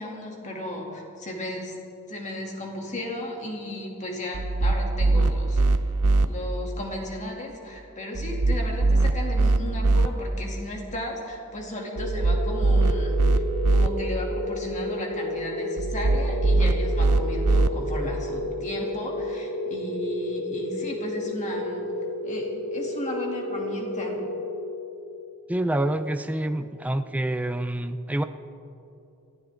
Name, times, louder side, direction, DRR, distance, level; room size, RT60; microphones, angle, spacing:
voice 1, 0.0-1.8 2.1-5.6 6.2-13.2 13.7-21.9 22.2-24.2, left 1 dB, 35° left, -1 dB, 2.7 m, -35 dB
sound 1, 4.3-6.3 8.1-10.1 12.0-13.9 15.8-17.7, right 2 dB, 80° right, 0.7 m, -22 dB
sound 2, 12.0-25.1, left 1 dB, 85° left, 4.9 m, -32 dB
voice 2, 25.5-28.2, right 1 dB, 5° right, 9 dB, 0.4 m, -27 dB
24.0 x 15.0 x 3.8 m, 2.8 s
head